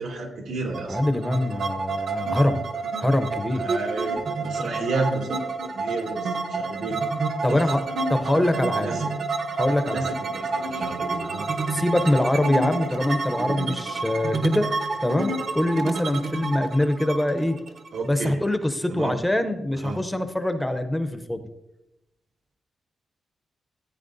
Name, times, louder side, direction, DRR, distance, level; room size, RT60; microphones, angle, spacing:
voice 1, 0.0-1.0 3.5-7.0 7.5-7.6 8.8-9.1 9.9-11.5 17.9-18.4 18.9-19.2 19.8-20.0, right 3 dB, 90° right, -1 dB, 2.5 m, -31 dB
sound 1, 0.7-18.4, right 3 dB, 55° right, 0.9 m, -29 dB
voice 2, 0.9-2.6 3.0-3.9 7.4-7.8 8.1-8.9 9.5-10.2 11.7-14.7 15.0-17.6 18.0-21.4, left 1 dB, 5° left, 8 dB, 0.6 m, -24 dB
15.0 x 9.1 x 2.6 m, 0.94 s
wide cardioid pair, 155°, 0 cm